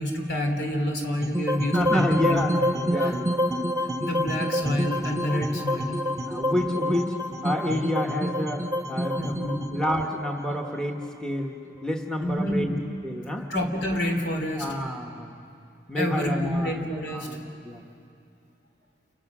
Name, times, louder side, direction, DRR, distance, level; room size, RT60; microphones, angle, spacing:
voice 1, 0.0-3.2 4.0-6.0 9.2-9.7 12.2-12.8 13.5-14.6 15.9-17.3, equal, 65° left, 3 dB, 3.4 m, -28 dB
sound 1, 1.2-11.4, equal, 20° right, 1.1 m, -28 dB
voice 2, 1.7-2.5 2.9-3.4 6.3-7.2 7.4-12.8 13.0-13.5 14.5-15.4 15.9-16.7 17.0-17.8, left 1 dB, 5° left, 2 dB, 1.3 m, -29 dB
29.5 x 29.0 x 6.2 m, 2.6 s
head